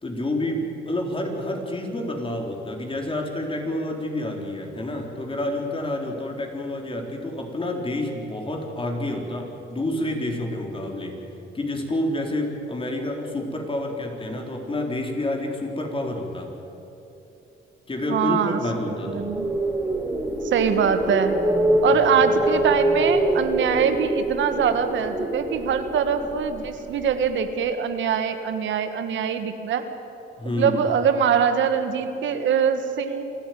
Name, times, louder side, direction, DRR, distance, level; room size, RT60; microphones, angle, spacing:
voice 1, 0.0-11.2 11.5-16.5 17.9-19.3 21.9-22.3 30.4-30.8, left 1 dB, 25° left, 2 dB, 4.1 m, -29 dB
voice 2, 18.1-18.6 19.1-19.5 20.4-21.4 21.8-29.8 30.5-33.2, right 7 dB, 70° right, 8 dB, 1.6 m, -23 dB
sound 1, 19.0-27.1, right 1 dB, 10° right, 3.5 m, -24 dB
27.0 x 13.0 x 9.4 m, 2.9 s
cardioid pair, 90°, 20 cm